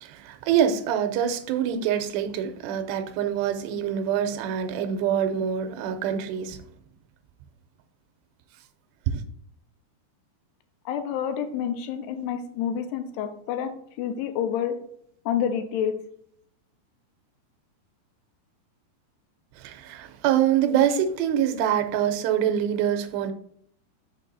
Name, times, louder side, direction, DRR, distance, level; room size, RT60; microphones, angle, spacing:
voice 1, 0.0-6.6 9.1-9.2 19.6-23.3, right 9 dB, 85° right, 8 dB, 2.8 m, -25 dB
voice 2, 10.9-14.8 15.3-15.9, left 8 dB, 85° left, 8 dB, 2.7 m, -28 dB
6.2 x 4.6 x 3.9 m, 0.67 s
omnidirectional pair, 4.8 m